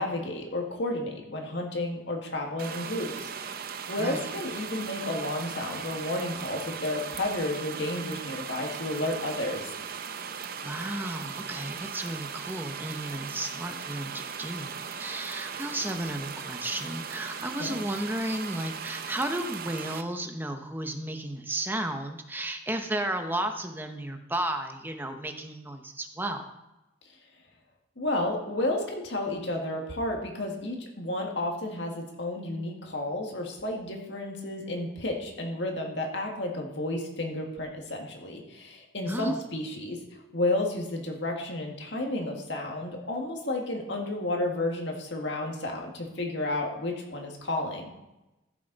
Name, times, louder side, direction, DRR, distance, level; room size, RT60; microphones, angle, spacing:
voice 1, 0.0-9.7 17.6-17.8 28.0-47.9, left 1 dB, 65° left, 1 dB, 1.9 m, -32 dB
sound 1, 2.6-20.0, right 6 dB, 50° right, 0.6 m, -38 dB
voice 2, 4.0-4.3 10.6-26.5 39.1-39.4, right 1 dB, 10° right, 6 dB, 0.8 m, -33 dB
14.5 x 6.9 x 4.0 m, 1.0 s
head